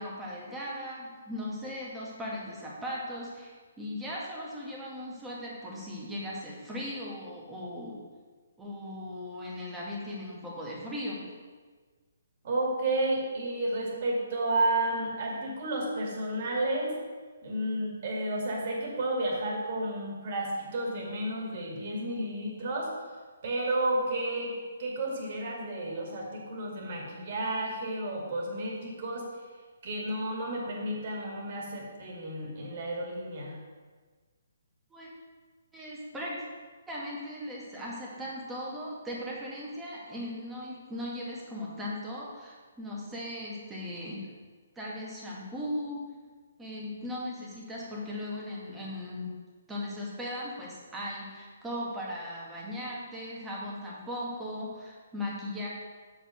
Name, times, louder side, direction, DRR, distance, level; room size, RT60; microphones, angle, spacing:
voice 1, 0.0-8.0 8.6-11.2 34.9-35.1 35.7-36.5 36.9-44.2 44.8-46.0 46.6-49.3 49.7-55.7, left 1 dB, 10° right, -5 dB, 2.0 m, -38 dB
voice 2, 12.4-17.0 17.4-22.9 23.4-24.5 24.8-29.3 29.8-33.5, right 1 dB, 50° right, -1 dB, 2.3 m, -31 dB
7.1 x 5.1 x 6.5 m, 1.5 s
figure-of-eight pair, 140°, 0 cm